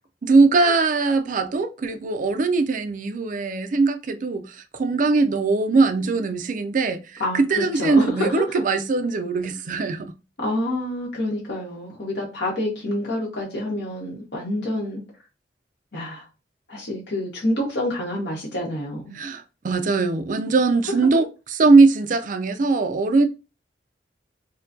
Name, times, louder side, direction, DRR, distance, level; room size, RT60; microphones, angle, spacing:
voice 1, 0.2-10.1 19.1-23.2, right 3 dB, 45° right, 0.4 m, -20 dB
voice 2, 7.2-8.6 10.4-15.0 15.9-16.2 16.7-19.2, left 1 dB, 70° left, 1.4 m, -27 dB
4.3 x 2.2 x 2.6 m
head